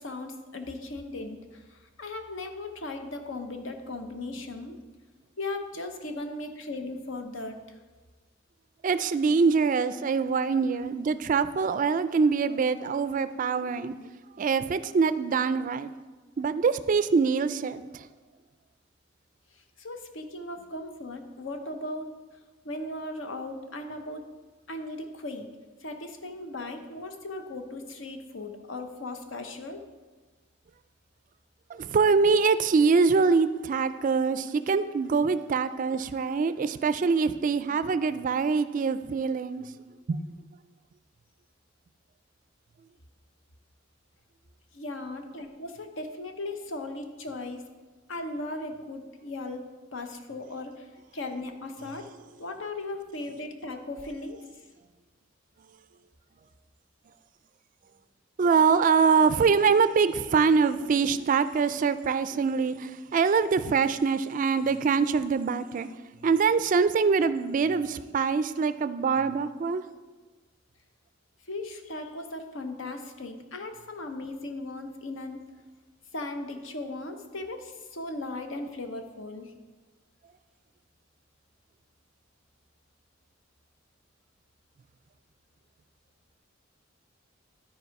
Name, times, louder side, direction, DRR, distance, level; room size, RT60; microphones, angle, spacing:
voice 1, 0.0-1.4 2.0-4.8 5.4-7.6 19.8-22.1 22.6-24.2 24.7-25.5 25.8-29.8 44.7-47.7 48.1-50.9 51.1-52.1 52.4-54.4 71.5-75.4 76.1-79.5, left 2 dB, 75° left, 6 dB, 0.9 m, -37 dB
voice 2, 8.8-13.9 14.4-15.9 16.4-18.0 31.8-39.7 40.1-40.2 58.4-65.9 66.2-69.8, right 5 dB, 40° right, 13 dB, 0.3 m, -24 dB
12.0 x 4.8 x 4.6 m, 1.3 s
head